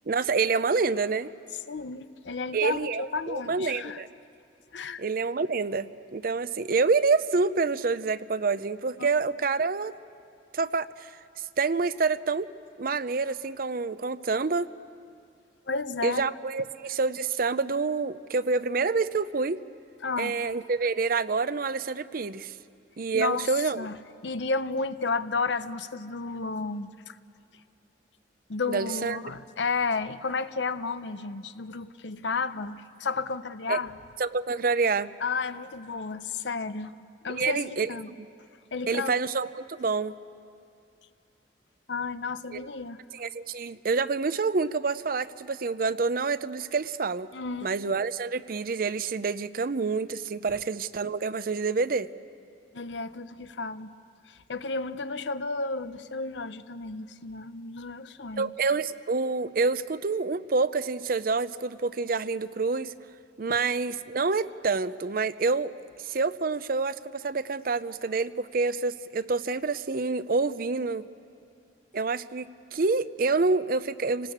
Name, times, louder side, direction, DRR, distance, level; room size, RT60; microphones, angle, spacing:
voice 1, 0.1-1.3 2.5-4.1 5.0-9.9 10.5-11.1 11.6-12.5 12.8-14.7 16.0-19.6 20.2-22.5 23.0-23.9 28.7-29.2 33.7-33.8 34.2-35.1 37.3-37.9 38.2-38.3 38.9-40.2 42.5-42.7 43.1-47.3 47.6-52.1 58.4-62.9 63.4-65.7 66.0-71.1 71.9-74.3, right 4 dB, 55° right, 14 dB, 0.6 m, -27 dB
voice 2, 1.7-4.0 4.7-5.0 9.0-9.1 15.7-16.3 20.0-20.4 23.1-24.0 24.2-27.2 28.5-34.0 35.2-37.0 37.2-38.1 38.7-39.2 41.9-43.0 47.3-47.7 50.5-50.6 52.7-53.9 54.3-58.5, left 4 dB, 85° left, 12 dB, 0.8 m, -32 dB
28.0 x 19.0 x 8.6 m, 2.4 s
head